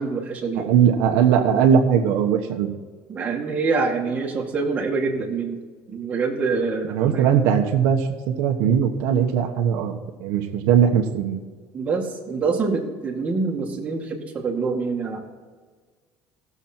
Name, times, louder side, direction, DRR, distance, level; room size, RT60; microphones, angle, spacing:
voice 1, 0.0-0.7 3.1-5.6 5.9-7.3 11.7-15.2, right 4 dB, 25° right, 0 dB, 2.2 m, -25 dB
voice 2, 0.5-2.7 6.9-9.9 10.2-11.4, right 8 dB, 75° right, 2 dB, 1.2 m, -19 dB
17.0 x 7.2 x 4.4 m, 1.5 s
cardioid pair, 145°, 6 cm